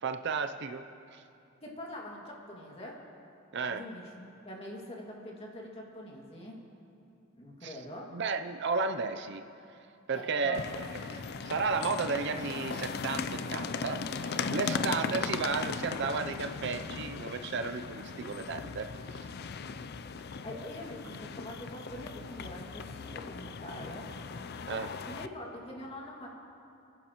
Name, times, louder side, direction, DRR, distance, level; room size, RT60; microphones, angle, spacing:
voice 1, 0.0-0.8 1.1-1.2 3.5-3.8 7.6-7.7 8.1-9.4 10.1-10.8 11.4-19.2 24.7-24.9, right 4 dB, 55° right, 8 dB, 0.5 m, -33 dB
voice 2, 1.6-3.0 3.7-6.6 7.3-8.1 10.1-10.6 14.4-14.8 20.4-24.1 25.0-26.3, left 1 dB, 30° left, -2 dB, 2.2 m, -44 dB
sound 1, 10.5-25.3, left 5 dB, 50° left, 0.4 m, -38 dB
30.0 x 10.5 x 3.0 m, 2.6 s
head